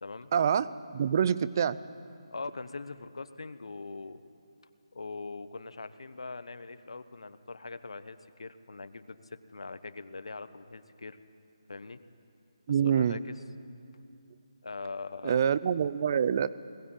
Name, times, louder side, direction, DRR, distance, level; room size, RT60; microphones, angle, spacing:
voice 1, 0.3-1.8 12.7-13.2 15.2-16.5, right 8 dB, 35° right, 16 dB, 0.6 m, -26 dB
voice 2, 2.3-4.2 4.9-11.2 11.7-12.0 12.8-13.3 14.6-15.4, left 3 dB, 75° left, 12 dB, 1.1 m, -42 dB
20.5 x 18.5 x 9.1 m, 2.6 s
figure-of-eight pair, 160°, 3 cm